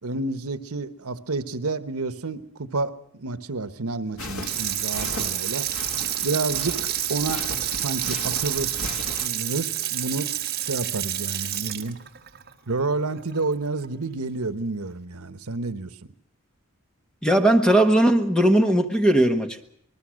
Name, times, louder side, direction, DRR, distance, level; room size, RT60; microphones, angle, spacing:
voice 1, 0.0-5.7 6.2-7.4 7.7-8.8 9.2-10.3 10.6-12.0 12.7-15.9, right 3 dB, 80° right, 12 dB, 1.2 m, -29 dB
sound 1, 4.2-9.3, left 2 dB, 75° left, 2.3 m, -37 dB
Water tap faucet / Sink (filling or washing), 4.2-13.4 13.8-13.9, right 12 dB, 50° right, 1.7 m, -29 dB
voice 2, 17.2-19.6, right 1 dB, 5° left, 6 dB, 1.5 m, -18 dB
26.5 x 19.5 x 6.4 m, 0.69 s
head